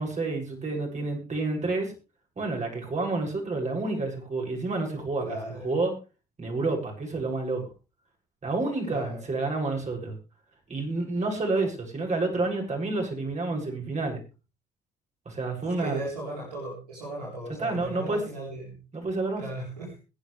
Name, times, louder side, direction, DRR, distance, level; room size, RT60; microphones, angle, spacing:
voice 1, 0.0-1.9 2.4-5.3 5.6-5.9 6.4-7.6 8.4-10.2 10.7-14.2 15.3-16.0 17.6-18.2 18.9-19.4, right 3 dB, 35° right, 1 dB, 7.2 m, -29 dB
voice 2, 5.2-5.6 8.9-9.2 15.8-18.8 19.4-20.0, right 2 dB, 85° right, -2 dB, 3.9 m, -36 dB
21.5 x 11.0 x 3.4 m, 0.32 s
figure-of-eight pair, 45°, 20 cm